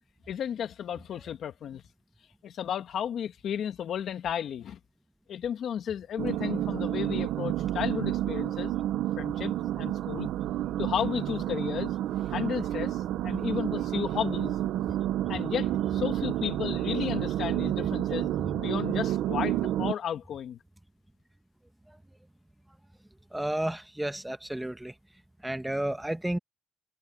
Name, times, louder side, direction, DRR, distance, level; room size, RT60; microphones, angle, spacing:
voice 1, 0.3-1.8 2.4-4.8 5.3-8.7 9.2-10.3 10.8-11.9 12.3-14.6 15.3-18.3 18.6-20.6, left 9 dB, 65° left, 1.8 m, -33 dB
sound 1, 6.2-19.9, right 13 dB, 85° right, 1.0 m, -30 dB
voice 2, 23.3-24.9 25.4-26.4, right 1 dB, 10° right, 1.4 m, -31 dB
cardioid pair, 90°, 0 cm